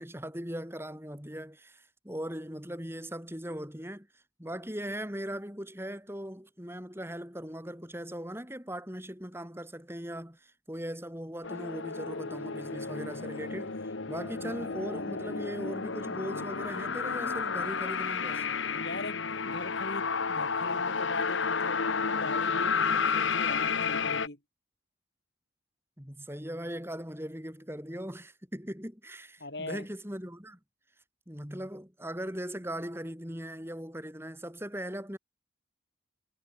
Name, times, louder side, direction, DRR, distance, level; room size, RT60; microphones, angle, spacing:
voice 1, 0.0-13.8 14.1-18.5 26.0-30.6 31.3-35.2, equal, 10° right, 5.7 m, -39 dB
sound 1, 11.4-24.3, left 5 dB, 80° left, 1.3 m, -31 dB
voice 2, 18.7-24.4 29.4-29.9, left 2 dB, 60° left, 4.1 m, -41 dB
head